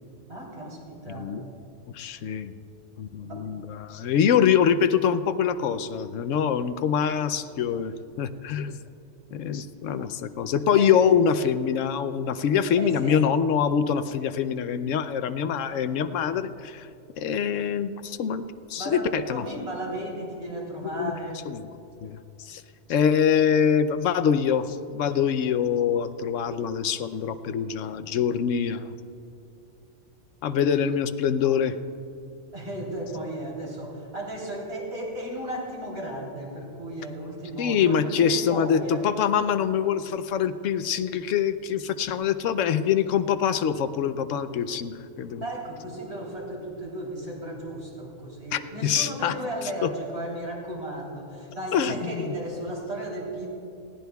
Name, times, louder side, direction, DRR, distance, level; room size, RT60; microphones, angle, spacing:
voice 1, 0.3-1.4 3.2-3.5 10.8-10.9 12.8-13.2 15.6-15.9 18.8-21.4 32.5-39.1 45.4-53.5, right 1 dB, 60° right, -4 dB, 3.7 m, -35 dB
voice 2, 1.9-2.5 3.0-8.8 9.3-16.9 17.2-18.4 18.7-19.4 20.9-21.1 21.5-21.7 22.0-22.6 22.9-28.9 30.4-31.8 37.6-45.4 48.5-49.4 49.8-49.9 51.7-52.3, left 7 dB, 80° left, 11 dB, 1.0 m, -24 dB
20.5 x 16.5 x 2.3 m, 2.6 s
omnidirectional pair, 1.3 m